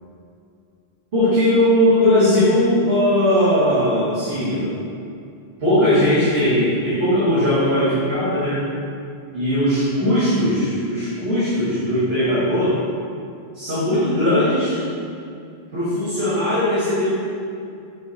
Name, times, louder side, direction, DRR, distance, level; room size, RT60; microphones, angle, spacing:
voice 1, 1.1-4.8 5.6-8.7 9.3-12.8 13.5-14.8 15.7-17.2, left 1 dB, 65° right, -10 dB, 2.0 m, -19 dB
9.3 x 3.3 x 4.1 m, 2.4 s
omnidirectional pair, 1.1 m